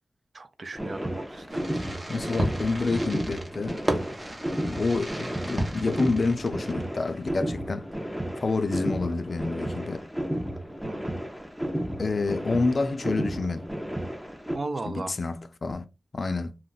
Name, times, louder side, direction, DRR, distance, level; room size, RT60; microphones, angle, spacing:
voice 1, 0.3-1.7 10.8-11.2 14.5-15.2, right 3 dB, 55° right, 0.4 m, -36 dB
sound 1, 0.7-14.6, equal, 10° right, 0.5 m, -33 dB
Fireworks, 1.5-7.1, right 1 dB, 35° right, 0.8 m, -34 dB
voice 2, 2.1-3.8 4.5-7.9 8.4-10.1 12.0-13.7 14.9-15.8 16.1-16.6, left 3 dB, 55° left, 0.4 m, -28 dB
2.3 x 2.0 x 3.8 m
cardioid pair, 65°, 0 cm